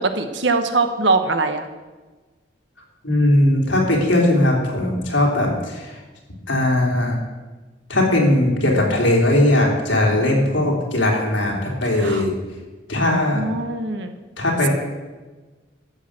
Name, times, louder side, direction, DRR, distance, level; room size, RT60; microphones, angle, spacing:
voice 1, 0.0-1.7 12.0-12.2 13.0-14.1, right 3 dB, 70° right, 8 dB, 1.2 m, -22 dB
voice 2, 3.0-6.0 6.5-7.2 7.9-12.3 12.9-13.4 14.4-14.7, left 1 dB, 75° left, -1 dB, 3.3 m, -19 dB
13.5 x 6.6 x 7.5 m, 1.3 s
head